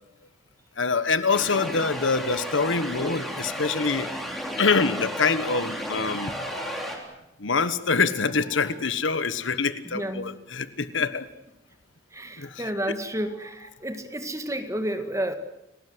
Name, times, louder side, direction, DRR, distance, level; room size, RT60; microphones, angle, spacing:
voice 1, 0.8-4.1 4.6-6.4 7.4-11.3 12.4-12.9, left 4 dB, 80° left, 13 dB, 1.3 m, -25 dB
sound 1, 1.3-7.0, equal, ahead, 3.7 m, -33 dB
sound 2, 6.1-7.0 8.1-8.8 12.4-12.6 13.1-13.7, left 2 dB, 40° left, 3.2 m, -45 dB
voice 2, 9.9-10.4 11.0-11.1 12.1-15.3, right 1 dB, 15° right, 8 dB, 1.9 m, -31 dB
30.0 x 18.5 x 8.0 m, 0.88 s
head